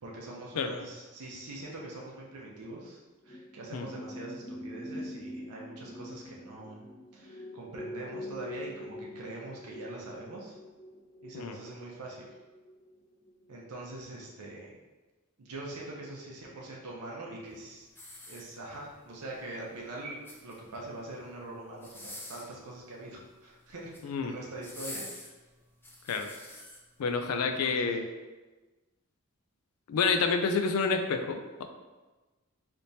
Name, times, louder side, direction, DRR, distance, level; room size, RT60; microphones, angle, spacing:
voice 1, 0.0-3.0 3.2-6.9 7.1-10.6 11.2-12.3 13.5-14.8 15.4-17.9 18.3-25.0 27.4-27.9, right 2 dB, 90° right, -3 dB, 0.6 m, -43 dB
sound 1, 3.2-13.6 13.8-14.0, left 1 dB, 30° left, 1.1 m, -44 dB
sound 2, 17.9-18.9 20.0-20.8 21.7-22.6 23.7-24.1 24.6-26.8 27.4-27.5, left 1 dB, 10° left, 0.4 m, -46 dB
voice 2, 24.0-24.3 26.1-26.3 27.0-28.1 29.9-31.6, left 5 dB, 75° left, 6 dB, 0.4 m, -28 dB
3.4 x 2.9 x 2.7 m, 1.2 s
head